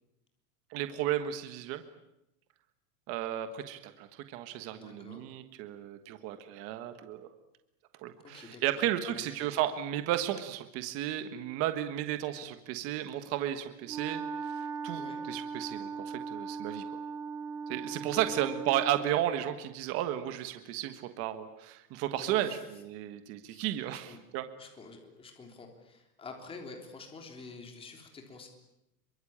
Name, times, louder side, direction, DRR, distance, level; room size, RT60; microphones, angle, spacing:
voice 1, 0.7-1.8 3.1-7.3 8.0-17.0 17.7-22.5 22.8-24.4, right 12 dB, 30° right, 9 dB, 1.4 m, -34 dB
voice 2, 4.7-5.2 8.3-8.6 9.1-9.3 14.9-15.2 18.0-18.4 22.2-22.6 23.4-23.6 24.1-24.2 24.6-28.5, left 3 dB, 10° left, 3 dB, 3.4 m, -47 dB
Wind instrument woodwind instrument, 13.8-19.2, right 5 dB, 5° right, 0.9 m, -39 dB
26.5 x 24.0 x 8.8 m, 0.87 s
supercardioid pair, 175°, 46 cm